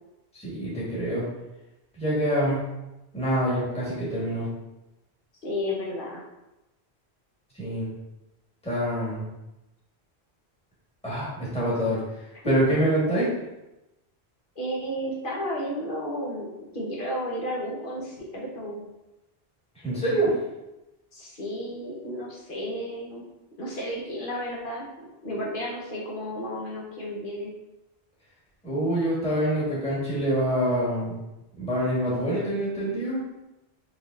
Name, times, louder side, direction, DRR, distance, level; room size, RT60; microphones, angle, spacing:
voice 1, 0.4-1.2 2.0-2.6 3.1-4.5 7.6-7.9 8.6-9.3 11.0-12.0 12.4-13.3 19.8-20.3 28.6-31.2 31.6-33.2, right 1 dB, 5° left, -7 dB, 1.3 m, -25 dB
voice 2, 5.4-6.2 12.4-12.6 14.5-16.5 16.7-18.8 21.1-23.2 23.6-24.8 25.2-27.5, equal, 55° left, -4 dB, 1.2 m, -32 dB
4.6 x 3.2 x 2.5 m, 0.97 s
omnidirectional pair, 1.1 m